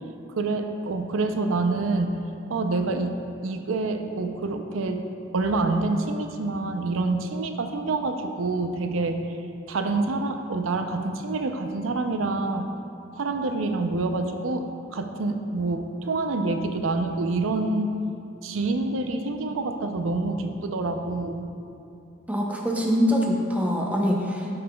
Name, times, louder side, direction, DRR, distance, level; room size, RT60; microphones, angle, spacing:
voice 1, 0.3-2.2 2.5-5.0 5.3-9.3 9.7-12.7 13.1-18.0 18.4-21.5, right 3 dB, 85° right, 6 dB, 0.5 m, -27 dB
voice 2, 22.3-24.6, equal, 10° right, -1 dB, 0.7 m, -24 dB
11.5 x 5.7 x 2.3 m, 2.6 s
head